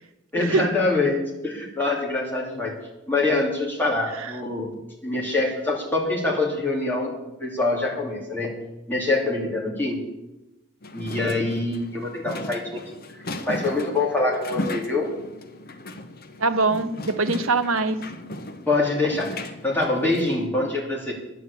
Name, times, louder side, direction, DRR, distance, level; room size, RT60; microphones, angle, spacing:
voice 1, 0.3-2.8 3.1-4.8 5.0-7.1 7.4-8.5 8.9-10.0 10.9-12.9 13.2-15.1 18.7-21.1, left 2 dB, 10° left, 2.9 m, -25 dB
sound 1, 10.8-20.5, left 1 dB, 45° left, 1.0 m, -36 dB
voice 2, 16.4-18.0, right 3 dB, 90° right, 1.0 m, -23 dB
11.0 x 9.5 x 8.1 m
head